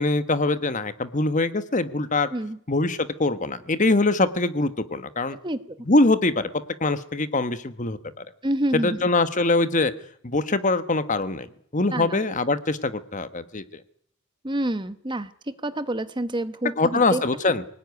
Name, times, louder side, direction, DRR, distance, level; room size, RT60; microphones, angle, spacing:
voice 1, 0.0-2.3 2.7-5.4 5.9-6.5 6.8-8.2 8.7-9.9 10.2-11.5 11.7-13.8 16.8-17.7, left 2 dB, 35° left, 12 dB, 1.2 m, -23 dB
voice 2, 5.4-5.8 8.4-9.0 11.9-12.2 14.4-17.2, right 1 dB, 20° right, 12 dB, 1.0 m, -28 dB
25.0 x 19.0 x 9.6 m, 0.67 s
head